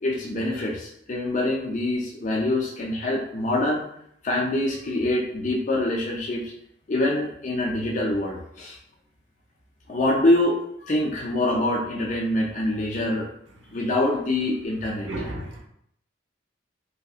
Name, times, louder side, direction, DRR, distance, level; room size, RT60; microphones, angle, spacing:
voice 1, 0.0-3.9 4.2-6.4 6.9-8.8 9.9-13.3 13.7-15.3, left 1 dB, 40° left, -3 dB, 0.4 m, -25 dB
voice 2, 15.0-15.6, right 1 dB, 85° right, -1 dB, 0.7 m, -32 dB
3.1 x 2.6 x 2.4 m, 0.72 s
head